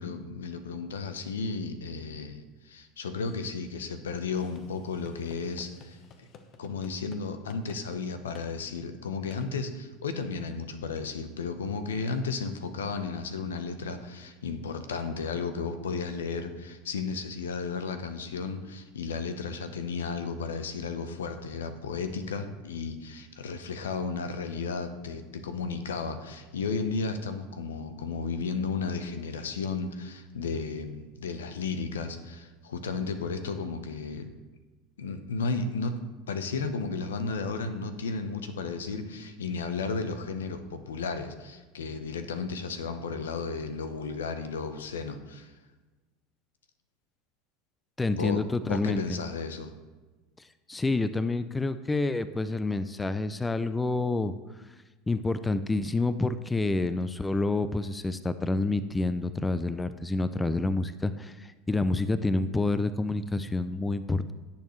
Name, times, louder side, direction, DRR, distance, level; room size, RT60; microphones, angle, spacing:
voice 1, 0.0-6.3 6.6-34.3 35.0-35.9 36.3-45.5 48.1-49.7, left 4 dB, 85° left, 9 dB, 0.9 m, -34 dB
sound 1, 4.4-7.2 7.5-7.8 8.3-8.5 9.3-9.5, left 6 dB, 50° left, 1.1 m, -52 dB
voice 2, 48.0-49.2 50.4-54.3 55.1-64.3, left 2 dB, 15° left, 13 dB, 0.5 m, -28 dB
17.0 x 7.2 x 3.2 m, 1.2 s
hypercardioid pair, 85°, 0 cm